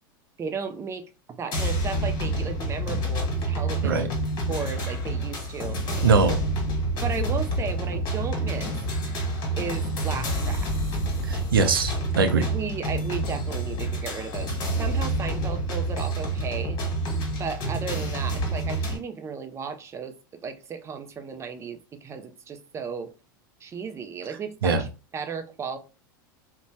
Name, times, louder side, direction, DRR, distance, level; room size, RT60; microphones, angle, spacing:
voice 1, 0.4-4.1 4.5-5.8 7.0-8.8 9.6-10.7 12.3-14.5 14.8-16.8 17.4-20.2 20.4-23.1 23.6-24.9 25.1-25.8, right 6 dB, 25° right, 0.4 m, -34 dB
sound 1, 1.5-19.0, right 1 dB, 45° left, 1.4 m, -28 dB
voice 2, 6.0-6.4 11.3-12.4 24.6-24.8, right 4 dB, 90° right, 0.5 m, -21 dB
2.6 x 2.2 x 3.1 m
hypercardioid pair, 95°, 11 cm